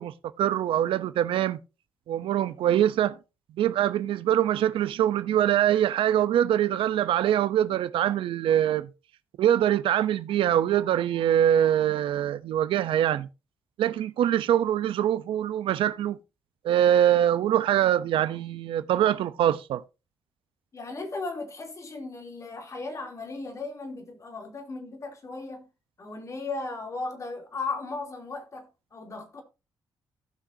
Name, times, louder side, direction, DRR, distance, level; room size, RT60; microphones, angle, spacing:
voice 1, 0.0-1.6 2.1-3.2 3.6-8.9 9.4-13.3 13.8-16.2 16.6-19.8, right 11 dB, 85° right, 0.6 m, -24 dB
voice 2, 20.7-25.6 26.0-28.7 28.9-29.4, left 3 dB, 35° left, 2.9 m, -36 dB
17.0 x 6.1 x 2.7 m
cardioid pair, 120°, 9 cm